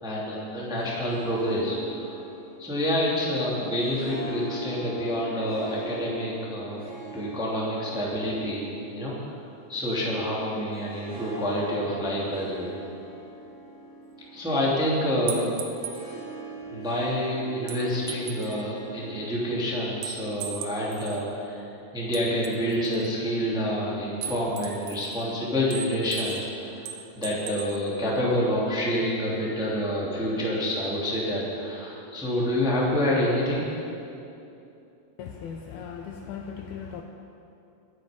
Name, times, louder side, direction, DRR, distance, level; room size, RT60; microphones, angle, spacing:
voice 1, 0.0-2.2 2.6-9.1 9.7-12.7 14.3-15.5 16.7-21.7 21.9-26.9 27.1-33.6, equal, ahead, -5 dB, 1.4 m, -28 dB
Harp, 0.6-20.4, right 2 dB, 25° right, 4.2 m, -43 dB
sound 1, 15.3-16.0 17.7-18.6 20.0-21.2 22.1-23.1 24.2-25.2 25.7-26.5 26.9-27.8, right 9 dB, 80° right, 2.0 m, -37 dB
voice 2, 35.2-37.0, left 7 dB, 85° left, 3 dB, 2.1 m, -38 dB
22.5 x 8.5 x 5.2 m, 2.8 s
omnidirectional pair, 5.2 m